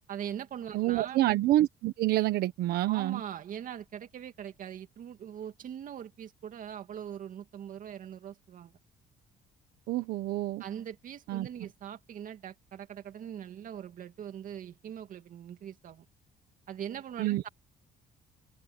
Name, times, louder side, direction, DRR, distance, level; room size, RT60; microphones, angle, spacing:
voice 1, 0.1-1.2 2.8-8.7 10.6-16.1 16.7-17.5, right 9 dB, 55° right, 2.4 m, -41 dB
voice 2, 0.7-3.2 9.9-10.6 11.3-11.5 17.2-17.4, right 15 dB, 80° right, 1.3 m, -27 dB
cardioid pair, 105°, 16 cm